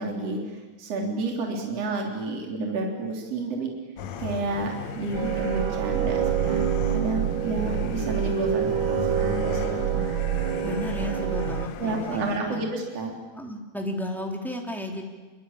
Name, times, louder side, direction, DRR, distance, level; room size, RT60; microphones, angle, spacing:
voice 1, 0.0-3.7 4.2-6.6 6.9-10.1 11.0-11.3 11.8-13.1, right 2 dB, 50° right, 1 dB, 4.3 m, -30 dB
sound 1, 4.0-12.4, left 8 dB, 65° left, 2.1 m, -36 dB
sound 2, 5.1-11.7, right 10 dB, 85° right, 1.1 m, -26 dB
voice 2, 10.6-12.6 13.3-15.0, left 1 dB, ahead, 1 dB, 3.0 m, -33 dB
26.5 x 24.0 x 8.8 m, 1.3 s
omnidirectional pair, 3.6 m